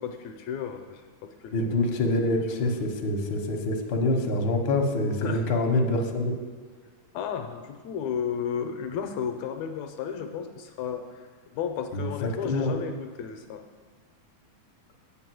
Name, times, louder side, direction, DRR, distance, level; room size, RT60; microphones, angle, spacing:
voice 1, 0.0-1.9 2.6-2.7 5.2-5.5 7.1-11.2 11.5-13.7, left 7 dB, 80° left, 5 dB, 1.8 m, -33 dB
voice 2, 1.5-6.3 11.9-12.8, left 2 dB, 65° left, 2 dB, 1.2 m, -26 dB
8.4 x 5.4 x 7.5 m, 1.5 s
omnidirectional pair, 3.4 m